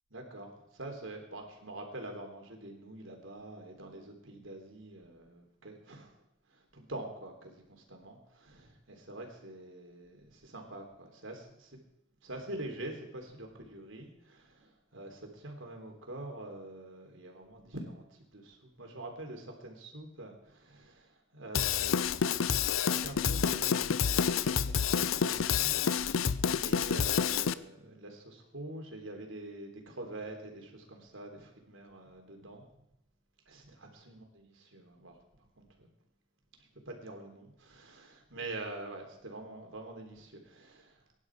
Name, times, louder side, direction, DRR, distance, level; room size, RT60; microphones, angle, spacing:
voice 1, 0.1-6.2 6.5-11.8 12.2-32.7 33.5-35.9 36.6-41.0, right 2 dB, 75° right, 3 dB, 3.5 m, -46 dB
Drum kit / Drum, 21.5-27.5, left 7 dB, 85° left, 0.6 m, -29 dB
23.5 x 11.0 x 4.9 m, 0.85 s
head